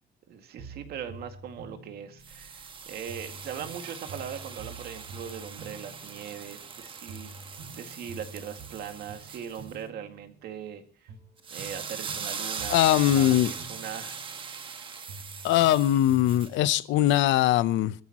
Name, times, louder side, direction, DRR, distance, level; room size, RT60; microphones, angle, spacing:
voice 1, 0.3-11.1 11.5-14.2, right 8 dB, 55° right, 2.1 m, -40 dB
sound 1, 0.6-2.7 3.1-6.8 7.1-10.7 11.1-14.8 15.1-16.7, right 3 dB, 85° right, 6.6 m, -47 dB
sound 2, 2.2-9.7 11.4-16.6 17.1-17.2, right 6 dB, 25° right, 1.1 m, -40 dB
voice 2, 12.7-13.5 15.4-17.9, left 13 dB, 85° left, 0.8 m, -21 dB
27.0 x 13.5 x 3.0 m
cardioid pair, 180°, 19 cm